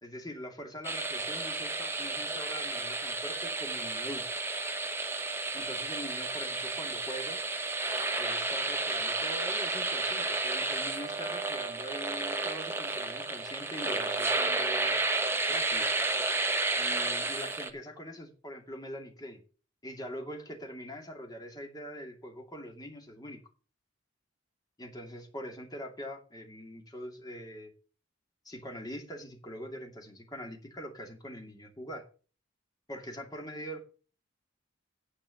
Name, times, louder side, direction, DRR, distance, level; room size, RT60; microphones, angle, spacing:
voice 1, 0.0-4.3 5.5-7.4 8.2-15.0 15.5-15.9 16.7-19.4 19.8-23.4 24.8-27.7 28.4-32.0 32.9-33.8, equal, 20° left, 2 dB, 2.6 m, -43 dB
sound 1, 0.8-17.7, right 3 dB, 10° right, 1.1 m, -32 dB
9.9 x 5.4 x 7.8 m, 0.37 s
head